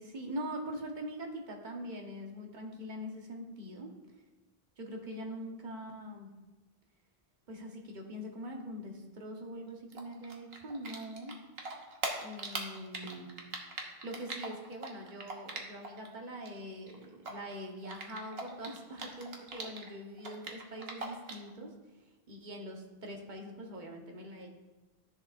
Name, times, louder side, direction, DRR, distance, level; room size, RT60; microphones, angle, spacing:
voice 1, 0.0-3.9 4.8-6.3 7.5-11.4 12.2-13.4 13.8-24.5, equal, 45° right, 1 dB, 1.3 m, -43 dB
Typing, 9.9-11.3 11.6-16.1 16.3-19.9 20.2-21.5, right 3 dB, 70° right, 1.3 m, -40 dB
13.0 x 7.0 x 2.6 m, 1.1 s
omnidirectional pair, 1.1 m